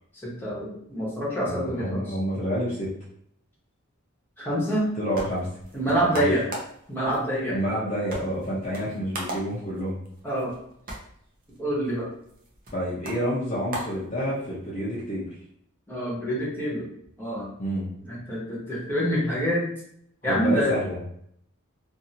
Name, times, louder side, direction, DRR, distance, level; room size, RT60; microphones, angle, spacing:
voice 1, 0.2-2.2 4.4-4.9 5.7-6.4 6.9-7.6 10.2-10.5 11.6-12.1 15.9-16.9 17.2-17.5 18.0-19.6 20.2-20.7, equal, 10° left, -7 dB, 1.0 m, -26 dB
voice 2, 1.5-2.9 5.0-5.5 5.8-6.3 7.5-10.0 12.7-15.3 17.6-17.9 20.3-21.0, equal, 35° left, -7 dB, 0.7 m, -29 dB
sound 1, 4.7-14.7, right 1 dB, 40° right, 0.6 m, -40 dB
2.6 x 2.6 x 2.8 m, 0.69 s
head